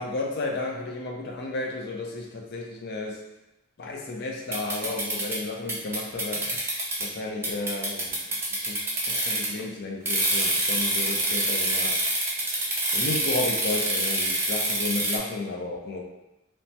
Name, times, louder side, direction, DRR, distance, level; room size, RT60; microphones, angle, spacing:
voice 1, 0.0-3.2 3.8-8.2 8.5-11.9 12.3-16.0, left 3 dB, 50° left, -1 dB, 0.5 m, -33 dB
sound 1, 4.5-5.4 5.7-7.1 7.4-9.6 10.0-15.2, right 1 dB, 10° right, 0.3 m, -26 dB
3.2 x 2.1 x 2.8 m, 0.94 s
head